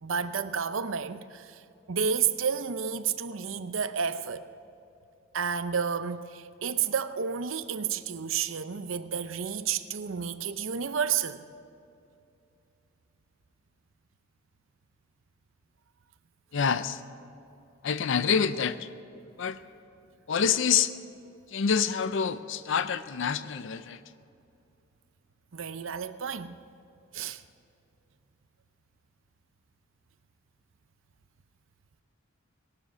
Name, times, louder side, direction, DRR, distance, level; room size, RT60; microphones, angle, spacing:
voice 1, 0.0-1.6 1.9-4.5 5.3-11.4 25.5-26.6 27.1-27.4, right 7 dB, 70° right, 0.6 m, -31 dB
voice 2, 16.5-17.0 17.8-18.9 19.4-19.6 20.3-20.9 21.5-24.0, left 7 dB, 65° left, 0.6 m, -27 dB
19.0 x 11.5 x 6.3 m
head